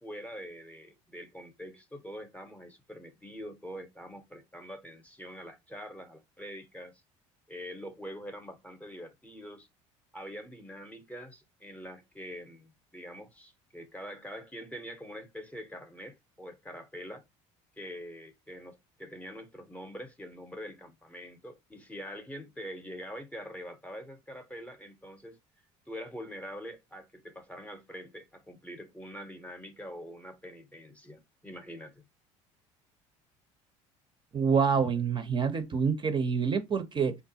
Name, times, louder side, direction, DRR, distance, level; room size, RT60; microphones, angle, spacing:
voice 1, 0.0-7.0 7.5-9.7 10.1-17.2 17.8-25.4 25.9-32.0, equal, 10° left, 0.7 m, -44 dB
voice 2, 34.3-37.2, right 6 dB, 30° right, 0.6 m, -27 dB
3.3 x 2.4 x 2.7 m
supercardioid pair, 80°, 16 cm